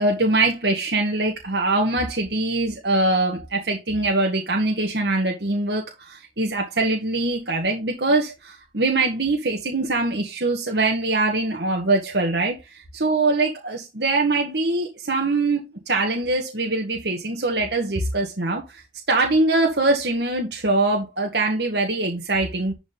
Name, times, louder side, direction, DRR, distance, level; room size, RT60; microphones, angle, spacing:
voice 1, 0.0-18.8 19.1-22.7, right 2 dB, 75° right, 1.9 m, -23 dB
11.5 x 4.6 x 3.9 m
head